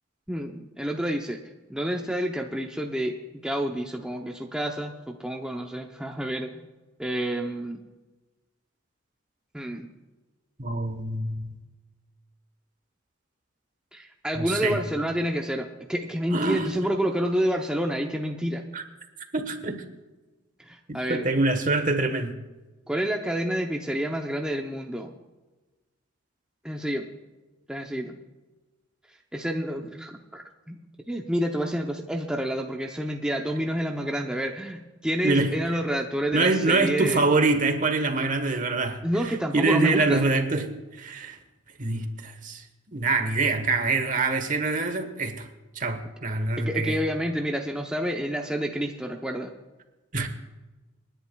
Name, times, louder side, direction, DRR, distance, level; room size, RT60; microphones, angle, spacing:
voice 1, 0.3-1.4 1.7-3.2 3.4-6.7 7.0-7.8 9.5-9.9 13.9-18.6 20.6-21.3 22.9-25.1 26.6-27.1 27.7-28.2 29.3-30.8 31.1-37.2 39.0-40.3 46.6-49.5, equal, 5° right, 1 dB, 0.7 m, -29 dB
voice 2, 10.6-11.5 14.3-14.8 16.3-16.7 18.7-18.8 19.3-19.8 20.9-22.4 35.2-35.5 36.3-39.0 39.5-40.7 41.0-41.4 41.8-42.6 42.9-45.4 45.7-47.0 50.1-50.3, right 3 dB, 40° right, 7 dB, 1.2 m, -25 dB
28.0 x 10.5 x 2.3 m, 1.2 s
head